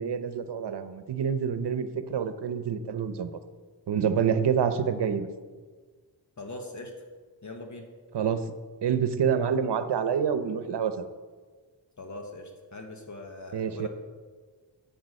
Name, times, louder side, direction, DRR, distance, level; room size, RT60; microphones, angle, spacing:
voice 1, 0.0-3.3 3.9-5.3 8.1-8.4 8.8-11.1 13.5-13.9, right 7 dB, 70° right, 10 dB, 0.9 m, -27 dB
voice 2, 6.4-6.9 7.4-7.9 12.0-13.9, left 2 dB, 45° left, 3 dB, 1.3 m, -41 dB
10.5 x 7.9 x 6.5 m, 1.5 s
wide cardioid pair, 155°, 42 cm